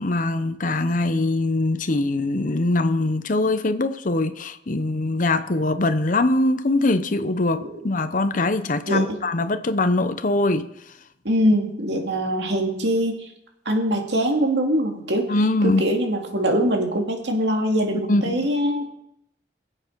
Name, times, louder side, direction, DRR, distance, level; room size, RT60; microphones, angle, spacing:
voice 1, 0.0-10.7 15.3-15.8 18.1-18.5, left 2 dB, 50° left, 0.7 m, -22 dB
voice 2, 11.2-13.2 13.7-15.3 15.6-18.9, equal, 80° right, 2.4 m, -22 dB
21.5 x 7.8 x 4.6 m
head